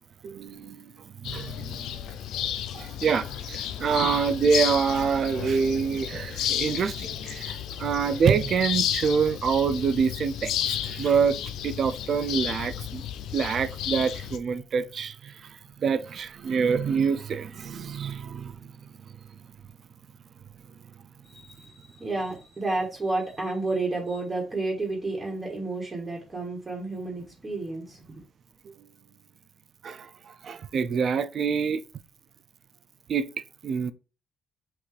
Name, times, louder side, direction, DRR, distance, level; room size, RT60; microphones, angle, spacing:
voice 1, 0.2-1.9 2.7-11.4 11.6-13.0 13.3-18.7 28.7-28.8 29.8-31.8 33.1-33.3 33.6-33.9, right 6 dB, 55° right, 0.4 m, -26 dB
sound 1, 1.2-14.4, left 10 dB, 85° left, 0.4 m, -32 dB
voice 2, 21.2-28.1, right 2 dB, 25° right, 1.5 m, -31 dB
5.8 x 2.6 x 3.2 m
cardioid pair, 90°, 0 cm